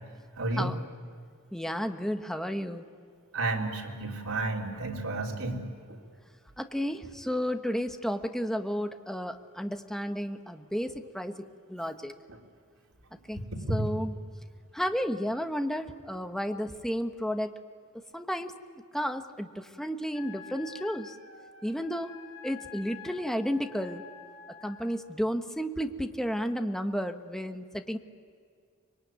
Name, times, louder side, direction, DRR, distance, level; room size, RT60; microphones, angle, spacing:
voice 1, 0.4-0.8 3.3-6.0 12.3-12.4 13.3-13.9, right 2 dB, 90° right, 0 dB, 3.8 m, -32 dB
voice 2, 1.5-2.9 6.6-12.2 13.3-13.4 13.7-14.1 14.7-17.6 18.1-18.5 18.9-21.1 21.6-22.2 22.4-24.0 24.6-28.0, equal, ahead, 6 dB, 1.2 m, -32 dB
Wind instrument woodwind instrument, 20.1-25.0, left 7 dB, 65° left, 3.1 m, -48 dB
25.0 x 22.0 x 9.5 m, 2.1 s
head